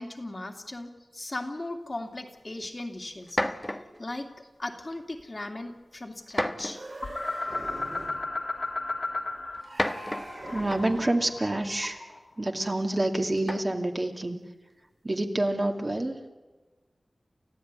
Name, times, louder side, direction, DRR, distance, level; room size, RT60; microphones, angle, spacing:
voice 1, 0.0-3.4 3.7-6.8, left 2 dB, 40° left, 4 dB, 2.6 m, -38 dB
sound 1, 2.6-2.7 3.2-4.0 4.9-5.2 6.3-7.0 8.1-8.2 9.5-11.1 13.4-13.9, left 1 dB, 15° left, 1.3 m, -32 dB
sound 2, 6.6-8.3 9.6-11.2, right 2 dB, 65° right, 6.5 m, -42 dB
sound 3, 7.0-9.6 9.9-12.2, left 2 dB, 55° left, 2.9 m, -34 dB
voice 2, 10.5-12.0 12.4-14.4 15.0-16.2, right 1 dB, 35° right, 4 dB, 2.5 m, -27 dB
29.5 x 15.0 x 9.7 m, 1.2 s
wide cardioid pair, 75°, 0 cm